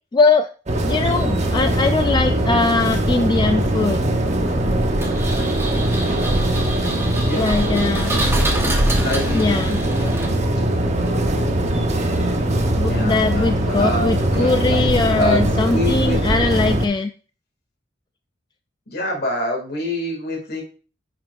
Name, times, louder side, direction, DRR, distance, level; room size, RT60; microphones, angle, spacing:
voice 1, 0.1-0.5 0.8-4.0 7.3-8.3 9.3-9.8 12.8-17.1, left 3 dB, 25° left, 8 dB, 0.3 m, -20 dB
sound 1, 0.7-16.9, right 1 dB, 40° right, 1.0 m, -21 dB
Engine, 5.0-10.7, right 1 dB, 15° right, 1.2 m, -28 dB
voice 2, 7.1-7.8 8.4-10.8 12.8-15.4 15.7-16.2 18.9-20.6, left 1 dB, 60° left, 1 dB, 2.4 m, -27 dB
9.5 x 6.0 x 2.6 m, 0.37 s
head